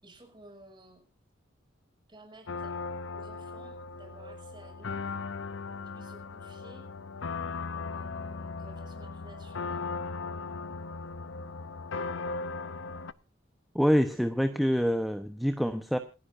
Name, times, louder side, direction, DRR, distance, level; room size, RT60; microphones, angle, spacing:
voice 1, 0.0-1.0 2.1-5.0 5.7-6.9 7.7-9.9, right 2 dB, 25° right, 3 dB, 6.3 m, -54 dB
sound 1, 2.5-13.1, left 4 dB, 75° left, 0.7 m, -38 dB
voice 2, 13.7-16.0, equal, ahead, 7 dB, 1.0 m, -26 dB
28.0 x 10.5 x 2.7 m, 0.31 s
head